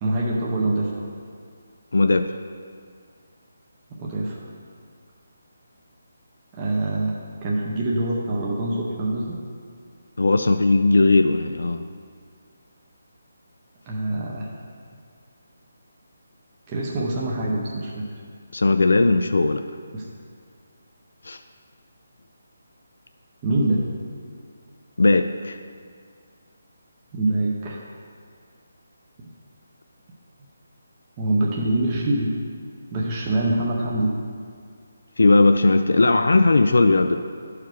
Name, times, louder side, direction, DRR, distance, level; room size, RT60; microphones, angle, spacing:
voice 1, 0.0-1.0 3.9-4.4 6.5-7.1 7.4-9.4 13.9-14.5 16.7-18.0 19.9-20.1 23.4-23.8 27.1-27.8 31.2-32.3 32.9-34.1, right 2 dB, 15° right, -4 dB, 0.6 m, -24 dB
voice 2, 1.9-2.3 10.2-11.8 18.5-19.6 21.2-21.4 25.0-25.6 35.2-37.2, left 2 dB, 85° left, 8 dB, 0.4 m, -18 dB
11.0 x 4.9 x 4.5 m, 2.1 s
hypercardioid pair, 175°, 0 cm